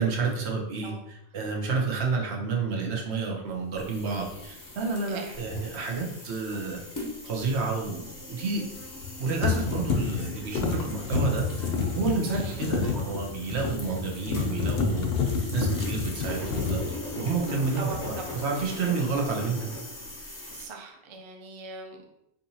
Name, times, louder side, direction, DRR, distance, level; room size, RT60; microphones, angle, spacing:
voice 1, 0.0-6.8 7.2-8.6 9.2-16.8 17.2-19.7, right 4 dB, 75° right, 0 dB, 1.1 m, -30 dB
sound 1, 3.7-20.7, left 1 dB, 25° left, 0.5 m, -40 dB
voice 2, 5.0-5.3 12.3-12.6 17.8-18.3 20.5-22.0, right 3 dB, 40° right, 2 dB, 0.5 m, -40 dB
sound 2, 5.4-5.6 8.8-9.1 9.4-17.6 17.9-18.4, left 5 dB, 65° left, 0.8 m, -29 dB
5.0 x 2.7 x 2.8 m, 0.82 s
omnidirectional pair, 1.1 m